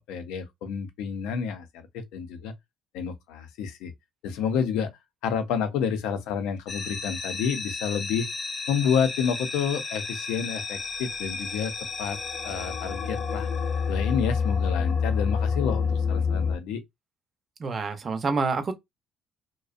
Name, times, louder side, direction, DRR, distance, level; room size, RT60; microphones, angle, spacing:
voice 1, 0.1-2.5 2.9-3.9 4.2-4.9 5.2-8.3 8.7-11.7 12.0-12.2 12.4-13.5 13.9-16.8, left 7 dB, 90° left, 0.6 m, -29 dB
sound 1, 6.7-16.6, left 5 dB, 25° left, 0.5 m, -29 dB
voice 2, 17.6-18.7, right 4 dB, 25° right, 0.6 m, -27 dB
2.5 x 2.1 x 2.4 m
cardioid pair, 155°, 0 cm